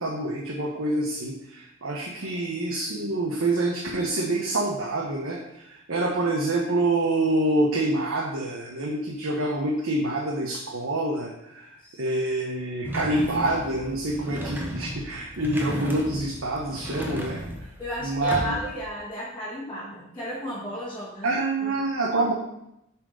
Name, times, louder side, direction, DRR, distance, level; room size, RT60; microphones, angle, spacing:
voice 1, 0.0-17.4 18.0-18.6 21.2-22.3, right 2 dB, 90° right, -2 dB, 1.1 m, -26 dB
voice 2, 2.2-2.5 11.8-12.0 17.8-21.7, left 1 dB, 10° left, -10 dB, 1.9 m, -34 dB
sound 1, 12.8-18.8, equal, 10° right, 1.1 m, -35 dB
7.7 x 4.4 x 5.0 m, 0.81 s
head